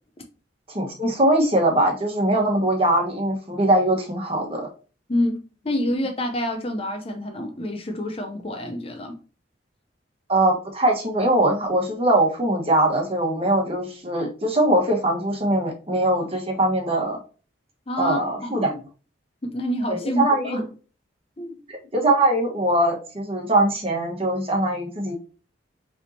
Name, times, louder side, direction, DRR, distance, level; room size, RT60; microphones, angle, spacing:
voice 1, 0.7-4.7 10.3-17.2 18.0-18.8 19.9-20.6 21.7-25.1, right 1 dB, 30° right, 1.3 m, -21 dB
voice 2, 5.1-9.2 17.9-18.7 19.4-20.6 21.4-21.6, left 1 dB, 30° left, 0.7 m, -27 dB
5.4 x 3.5 x 2.7 m
head